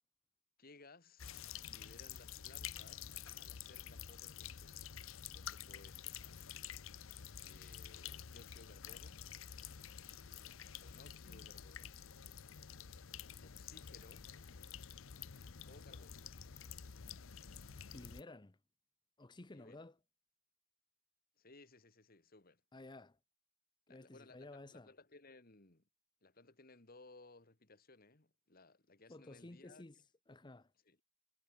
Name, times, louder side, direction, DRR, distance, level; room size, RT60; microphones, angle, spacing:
voice 1, 0.6-1.4 1.7-6.2 7.4-9.3 10.7-12.0 13.4-14.3 15.7-16.2 19.5-19.9 21.4-22.6 23.9-25.8 26.2-29.8 30.9-31.0, left 3 dB, 45° left, 2.1 m, -62 dB
sound 1, 1.2-18.2, left 8 dB, 80° left, 0.8 m, -50 dB
voice 2, 17.9-18.6 19.2-20.0 22.7-23.2 23.9-24.9 29.1-30.0 30.3-30.7, left 2 dB, 20° left, 0.7 m, -54 dB
head